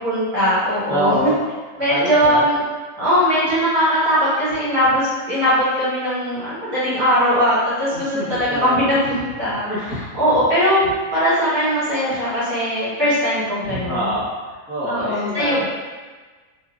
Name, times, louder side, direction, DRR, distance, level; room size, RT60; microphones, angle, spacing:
voice 1, 0.0-1.3 1.8-2.6 3.0-9.8 10.2-14.1 14.9-15.6, equal, 70° right, -11 dB, 2.0 m, -20 dB
voice 2, 0.9-1.3 1.9-2.4 7.9-8.8 9.7-10.0 13.6-15.6, equal, 5° right, -17 dB, 0.8 m, -26 dB
3.2 x 2.6 x 2.4 m, 1.4 s
omnidirectional pair, 1.5 m